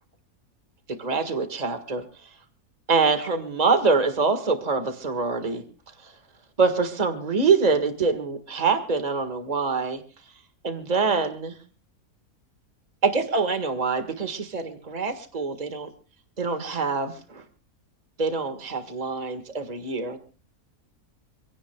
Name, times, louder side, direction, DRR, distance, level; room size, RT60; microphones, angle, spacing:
voice 1, 1.0-2.3 2.9-5.6 6.0-6.1 6.6-10.0 10.6-11.6 13.0-15.9 16.4-17.4 18.2-20.2, right 4 dB, 25° right, 8 dB, 1.8 m, -25 dB
26.0 x 17.0 x 2.3 m, 0.36 s
omnidirectional pair, 1.6 m